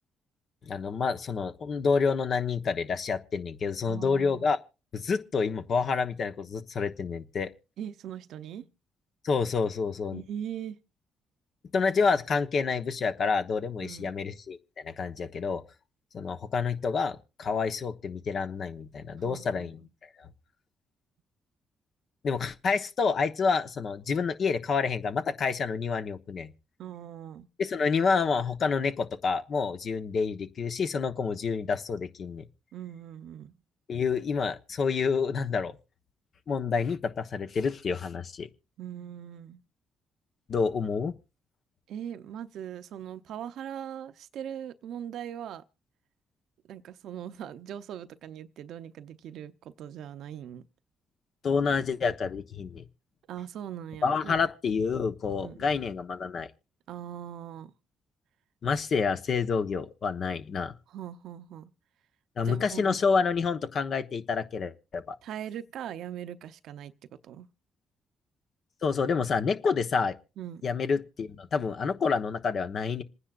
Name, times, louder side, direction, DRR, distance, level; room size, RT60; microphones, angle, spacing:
voice 1, 0.7-4.6 4.9-7.5 9.2-10.2 11.7-14.6 14.8-15.6 16.1-19.8 20.2-20.3 22.2-26.5 27.6-32.4 33.9-35.7 36.5-38.5 40.5-41.2 51.4-52.8 54.0-56.5 58.6-60.7 62.4-65.2 68.8-70.1 70.6-73.0, left 5 dB, 60° left, 1.1 m, -28 dB
voice 2, 3.9-4.5 7.8-8.7 10.1-10.8 13.8-14.2 19.2-19.7 26.8-27.5 32.7-33.6 38.8-39.6 41.9-45.6 46.7-50.7 53.3-54.4 55.4-55.7 56.9-57.7 60.9-61.7 62.4-63.0 65.2-66.9 67.2-67.5 70.4-70.6, right 10 dB, 75° right, 0.7 m, -40 dB
27.5 x 9.9 x 2.5 m
supercardioid pair, 60°, 0 cm